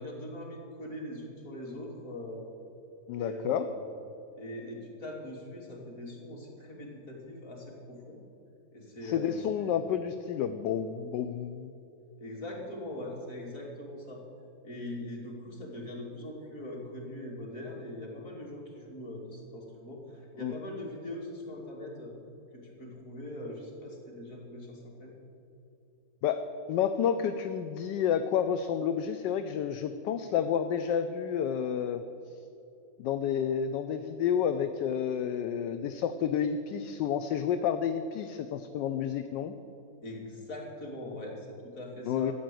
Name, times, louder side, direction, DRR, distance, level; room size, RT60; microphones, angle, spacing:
voice 1, 0.0-2.4 3.1-3.8 4.4-8.2 8.7-9.7 12.2-14.2 14.6-22.1 22.5-25.1 40.0-42.3, left 1 dB, 45° left, -2 dB, 3.0 m, -41 dB
voice 2, 3.1-3.7 9.0-11.7 20.4-20.5 26.2-26.4 26.7-32.0 33.0-39.5 42.1-42.3, left 8 dB, 80° left, 9 dB, 1.2 m, -30 dB
13.0 x 8.8 x 7.7 m, 2.8 s
omnidirectional pair, 1.9 m